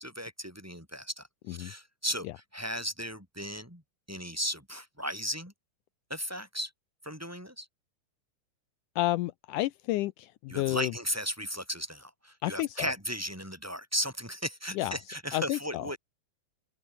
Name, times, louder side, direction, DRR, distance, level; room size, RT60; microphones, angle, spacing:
voice 1, 0.0-3.8 4.1-5.5 6.1-6.7 7.0-7.7 10.5-16.0, equal, 5° right, 7.3 m, -36 dB
voice 2, 9.0-10.9 12.4-12.9 14.8-15.0 15.3-15.9, left 17 dB, 85° left, 1.9 m, -31 dB
open air
omnidirectional pair, 4.3 m